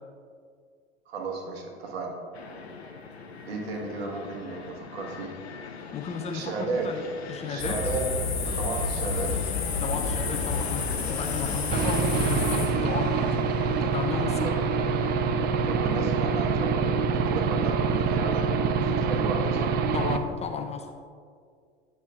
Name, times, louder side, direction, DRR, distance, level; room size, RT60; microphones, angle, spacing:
voice 1, 1.1-2.2 3.5-5.3 6.3-6.9 7.5-8.1 8.5-9.3 14.4-14.7 15.6-19.8, right 3 dB, 75° right, 0 dB, 1.3 m, -34 dB
Fixed-wing aircraft airplane, 2.3-20.3, left 5 dB, 90° left, 0.6 m, -40 dB
voice 2, 5.9-6.5 6.8-7.8 9.8-13.3 13.8-14.5 19.9-20.9, left 5 dB, 20° left, 5 dB, 0.5 m, -34 dB
sound 1, 7.6-12.7, left 4 dB, 70° left, 1.6 m, -30 dB
Aircraft / Engine, 11.7-20.2, right 5 dB, 30° right, 0.4 m, -25 dB
8.7 x 6.2 x 2.4 m, 2.2 s
figure-of-eight pair, 80°, 31 cm